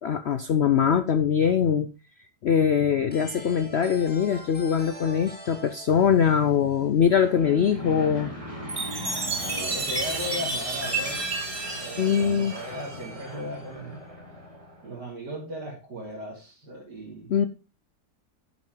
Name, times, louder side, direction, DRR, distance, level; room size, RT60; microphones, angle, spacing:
voice 1, 0.0-1.9 2.4-8.3 12.0-12.5 17.3-17.5, left 7 dB, 70° left, 11 dB, 0.6 m, -22 dB
sound 1, 3.1-7.7, equal, 5° left, 1.8 m, -44 dB
Aircraft / Engine, 7.0-15.0, equal, 20° right, 4.0 m, -39 dB
Chime, 8.7-13.3, right 3 dB, 40° right, 2.0 m, -31 dB
voice 2, 9.4-14.0 14.8-17.3, equal, 75° right, -5 dB, 3.7 m, -37 dB
10.5 x 8.0 x 3.8 m, 0.31 s
omnidirectional pair, 1.8 m